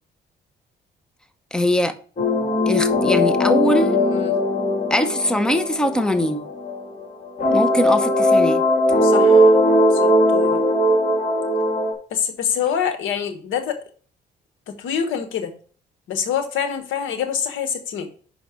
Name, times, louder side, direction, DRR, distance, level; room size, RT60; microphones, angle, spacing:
voice 1, 1.5-1.9 2.7-4.0 4.9-6.5 7.5-8.6, equal, 5° left, 0.7 m, -21 dB
sound 1, 2.2-7.0 7.4-11.9, left 1 dB, 35° left, 2.9 m, -18 dB
voice 2, 3.7-4.4 9.0-9.5 9.9-10.6 12.1-13.8 14.7-15.5 16.1-18.1, left 8 dB, 85° left, 1.2 m, -26 dB
5.8 x 5.2 x 4.9 m
cardioid pair, 90°, 20 cm